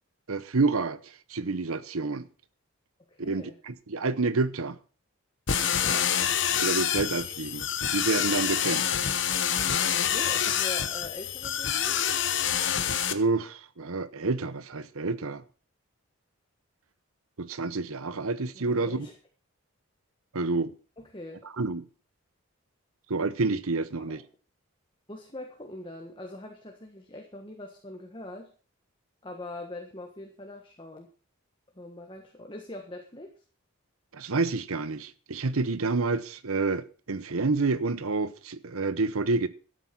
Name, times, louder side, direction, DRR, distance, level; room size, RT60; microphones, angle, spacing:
voice 1, 0.3-1.0 1.3-2.3 3.2-4.8 6.6-8.8 13.1-15.4 17.4-19.1 20.3-20.7 21.6-21.8 23.1-24.2 34.1-39.5, right 3 dB, 80° right, 0.9 m, -28 dB
voice 2, 3.1-3.6 5.7-6.2 9.9-12.0 18.5-19.1 21.0-21.5 24.1-24.2 25.1-28.5 29.2-31.1 31.7-33.3, left 1 dB, 20° left, 1.4 m, -42 dB
sound 1, 5.5-13.1, left 9 dB, 55° left, 1.0 m, -27 dB
13.0 x 8.3 x 6.0 m
head